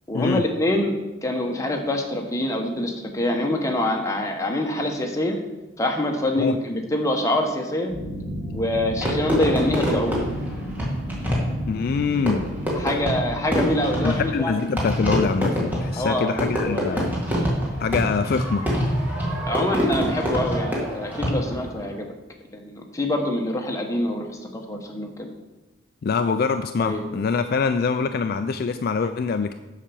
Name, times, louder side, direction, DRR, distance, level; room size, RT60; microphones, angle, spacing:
voice 1, 0.1-5.4 5.8-7.9 8.5-10.2 12.7-14.6 16.0-17.0 19.5-22.1 22.5-24.3 24.5-25.3 26.8-27.0, left 1 dB, 15° left, 2 dB, 1.0 m, -25 dB
sound 1, 7.9-14.2, equal, 65° right, 2.4 m, -33 dB
Fireworks, 9.0-21.7, equal, 10° right, 2.0 m, -26 dB
voice 2, 11.7-12.4 14.0-17.1 17.8-18.7 26.0-29.5, left 5 dB, 50° left, 8 dB, 0.3 m, -24 dB
7.3 x 5.8 x 6.9 m, 1.1 s
head